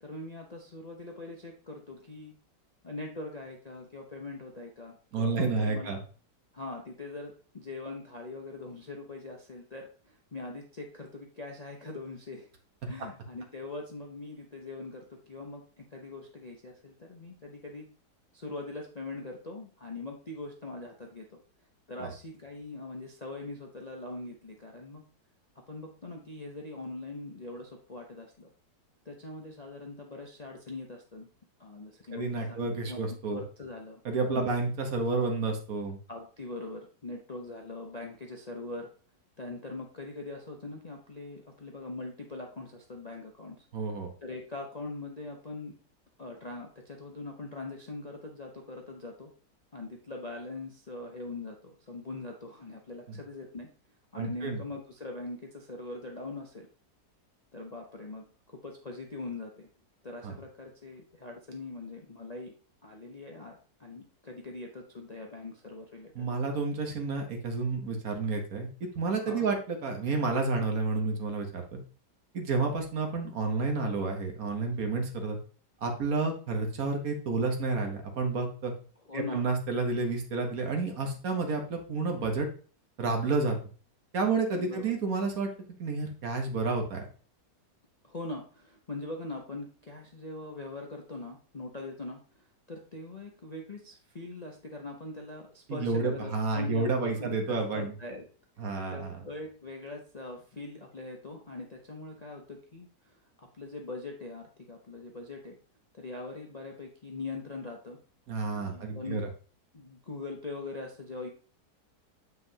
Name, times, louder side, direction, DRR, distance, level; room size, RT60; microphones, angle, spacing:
voice 1, 0.0-2.3 2.8-6.0 6.5-12.5 12.9-17.9 18.3-21.4 21.9-25.0 25.7-28.5 29.0-31.3 31.6-33.0 33.3-34.0 34.3-34.5 36.1-38.9 39.4-43.6 44.2-45.7 46.2-49.3 49.7-53.7 54.1-56.7 57.5-59.7 60.0-62.5 62.8-66.3 69.2-69.5 79.1-79.5 84.2-84.9 88.0-98.3 98.6-105.6 105.9-108.0 108.4-109.3 109.7-111.3, left 2 dB, 35° left, 1 dB, 0.7 m, -42 dB
voice 2, 5.1-6.0 22.0-22.1 32.1-33.4 34.0-36.0 43.7-44.1 53.1-53.2 54.1-54.6 60.2-60.3 66.1-71.8 72.3-75.4 75.8-78.7 79.1-82.5 83.0-83.6 84.1-85.5 85.8-87.0 95.7-97.9 98.6-99.2 108.3-109.3, right 3 dB, 60° right, 3 dB, 1.5 m, -30 dB
7.4 x 5.9 x 2.8 m, 0.39 s
omnidirectional pair, 1.8 m